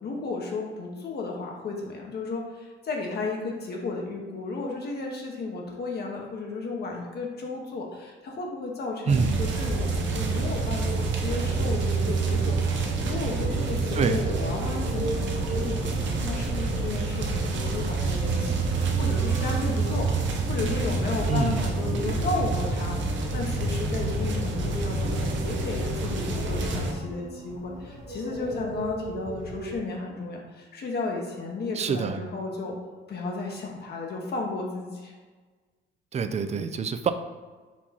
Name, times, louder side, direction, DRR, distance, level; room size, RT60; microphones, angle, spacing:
voice 1, 0.0-32.8 33.1-35.2, left 3 dB, 55° left, 0 dB, 0.9 m, -33 dB
sound 1, 9.1-26.9, right 3 dB, 70° right, 0.7 m, -27 dB
sound 2, 10.7-29.8, right 1 dB, 85° right, 1.3 m, -40 dB
voice 2, 21.3-21.6 31.8-32.3 36.1-37.1, right 5 dB, 35° right, 10 dB, 0.3 m, -26 dB
4.5 x 2.8 x 4.1 m, 1.4 s
cardioid pair, 90°, 20 cm